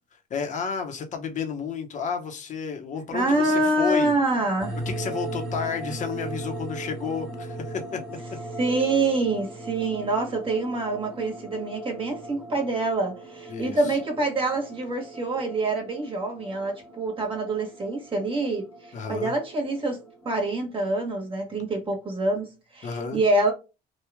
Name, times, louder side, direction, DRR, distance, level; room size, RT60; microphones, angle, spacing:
voice 1, 0.3-4.1 4.9-8.0 13.5-13.9 18.9-19.3 22.8-23.2, left 6 dB, 45° left, 0.9 m, -31 dB
voice 2, 3.1-4.8 8.6-20.0 20.2-23.5, right 2 dB, 30° right, 1.4 m, -26 dB
sound 1, 4.6-20.5, right 2 dB, ahead, 1.2 m, -38 dB
3.1 x 2.4 x 3.4 m
cardioid pair, 110°, 17 cm